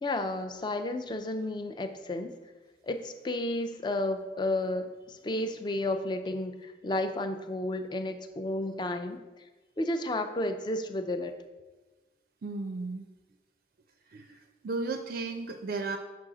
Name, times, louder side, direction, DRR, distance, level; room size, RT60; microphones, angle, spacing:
voice 1, 0.0-2.3 2.8-4.9 5.2-6.5 6.8-9.2 9.8-11.3, left 1 dB, 25° left, 7 dB, 0.4 m, -32 dB
voice 2, 12.4-13.1 14.1-16.0, right 3 dB, 55° right, 6 dB, 0.4 m, -35 dB
6.1 x 4.7 x 3.8 m, 1.2 s
head